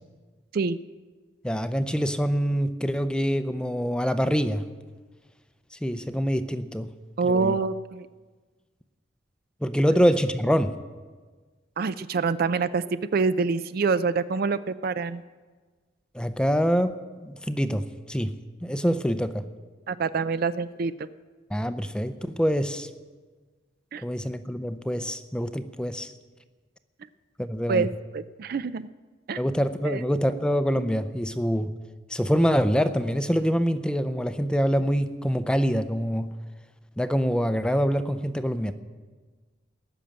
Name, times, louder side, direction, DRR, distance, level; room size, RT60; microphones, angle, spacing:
voice 1, 1.4-4.6 5.8-6.9 7.2-7.6 9.6-10.7 16.1-16.9 17.2-18.3 18.6-19.4 21.5-22.9 24.0-26.1 27.4-27.9 29.4-31.7 32.1-36.3 37.0-38.7, equal, 5° left, 10 dB, 0.5 m, -25 dB
voice 2, 7.2-8.1 11.8-12.8 13.1-15.2 19.9-21.1 23.9-24.0 27.7-28.9 29.3-29.4 29.8-30.0, right 4 dB, 50° right, 14 dB, 0.4 m, -26 dB
18.5 x 6.8 x 8.9 m, 1.4 s
head